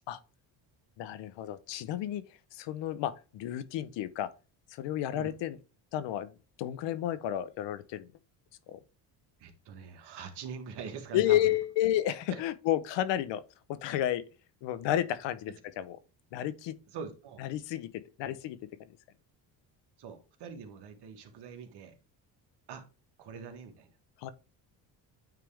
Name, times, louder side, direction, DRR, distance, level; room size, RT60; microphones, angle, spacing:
voice 1, 1.0-2.2 2.5-4.3 4.7-5.6 5.9-8.1 8.7-8.8 11.1-13.4 13.7-14.2 14.6-16.0 16.3-16.7 17.4-18.6 24.2-24.3, left 12 dB, 75° left, 0.8 m, -31 dB
voice 2, 9.4-11.5 12.3-12.4 16.9-17.4 18.2-18.4 20.0-21.9 22.7-22.8 23.2-23.9, right 6 dB, 65° right, 1.5 m, -43 dB
9.3 x 3.4 x 3.4 m
cardioid pair, 100°, 44 cm